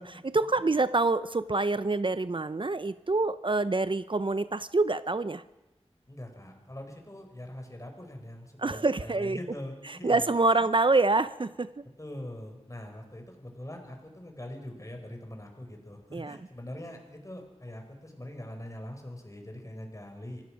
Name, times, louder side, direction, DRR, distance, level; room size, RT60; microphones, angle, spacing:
voice 1, 0.0-5.4 8.6-9.4 9.9-11.7 16.1-16.4, right 3 dB, 50° right, 14 dB, 0.6 m, -26 dB
voice 2, 6.1-10.6 12.0-20.4, left 1 dB, 30° left, 4 dB, 5.3 m, -43 dB
25.5 x 17.0 x 6.4 m, 1.0 s
wide cardioid pair, 45°, 11 cm